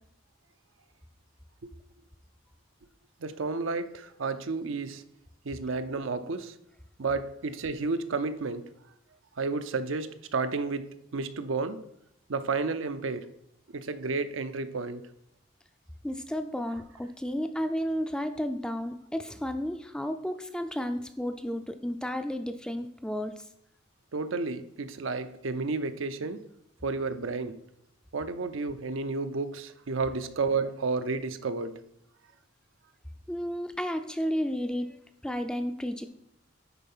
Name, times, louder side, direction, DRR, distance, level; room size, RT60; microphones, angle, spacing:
voice 1, 3.2-5.0 5.4-6.5 7.0-8.6 9.4-11.8 12.3-13.3 13.7-15.0 24.1-26.4 26.8-27.6 28.1-31.7, right 4 dB, 80° right, 10 dB, 0.6 m, -31 dB
voice 2, 16.0-23.5 33.3-36.0, equal, 5° left, 8 dB, 0.4 m, -32 dB
10.0 x 4.2 x 5.5 m, 0.78 s
head